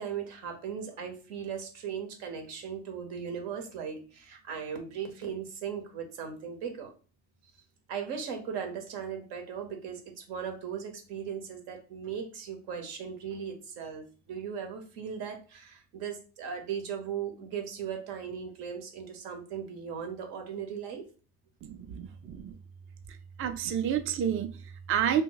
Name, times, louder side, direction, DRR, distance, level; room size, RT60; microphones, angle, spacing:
voice 1, 0.0-6.9 7.9-21.0, right 7 dB, 85° right, 4 dB, 0.9 m, -38 dB
voice 2, 21.6-22.5 23.4-25.2, right 9 dB, 35° right, 8 dB, 0.4 m, -30 dB
2.7 x 2.2 x 3.8 m, 0.36 s
supercardioid pair, 80°, 38 cm